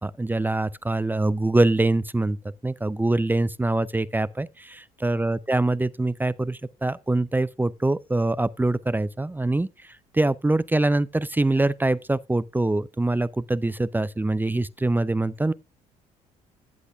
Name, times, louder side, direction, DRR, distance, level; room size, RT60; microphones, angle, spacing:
voice 1, 0.0-2.4 2.6-15.5, right 2 dB, 10° right, 0.5 m, -24 dB
13.5 x 8.2 x 2.4 m
supercardioid pair, 65°, 18 cm